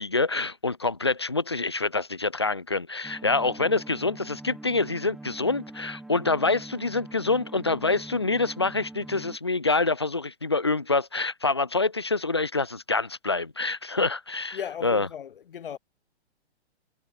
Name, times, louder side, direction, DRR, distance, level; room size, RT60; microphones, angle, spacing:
voice 1, 0.0-14.6 14.8-15.1, left 3 dB, 25° left, 0.4 m, -26 dB
sound 1, 3.0-9.4, right 2 dB, ahead, 7.4 m, -44 dB
voice 2, 14.5-15.8, left 8 dB, 50° left, 5.2 m, -37 dB
hypercardioid pair, 175°, 34 cm